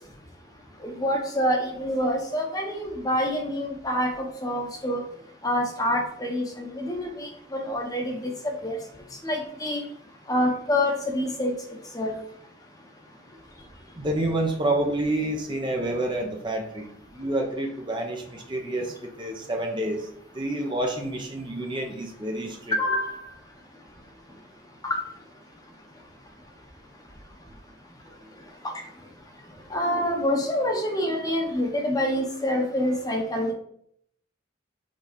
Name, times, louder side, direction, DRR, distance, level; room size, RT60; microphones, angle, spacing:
voice 1, 0.8-5.0 5.4-8.8 9.2-9.8 10.3-11.5 11.9-12.1 22.8-23.3 24.8-25.0 28.6-28.8 29.7-33.5, left 1 dB, 20° left, 2 dB, 1.0 m, -27 dB
voice 2, 14.0-20.0 20.3-22.7, right 1 dB, 25° right, 2 dB, 0.8 m, -28 dB
5.3 x 3.9 x 5.2 m, 0.68 s
head